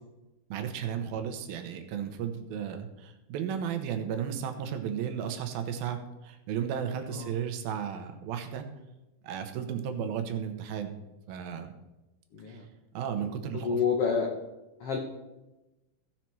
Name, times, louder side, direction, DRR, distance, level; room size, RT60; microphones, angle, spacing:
voice 1, 0.5-8.7 9.2-11.0 11.3-11.7 12.5-12.6 12.9-13.8, right 8 dB, 80° right, 7 dB, 2.7 m, -34 dB
voice 2, 12.3-12.7 13.5-14.3 14.8-15.0, left 6 dB, 80° left, 2 dB, 1.3 m, -28 dB
16.0 x 5.8 x 4.6 m, 1.0 s
omnidirectional pair, 4.4 m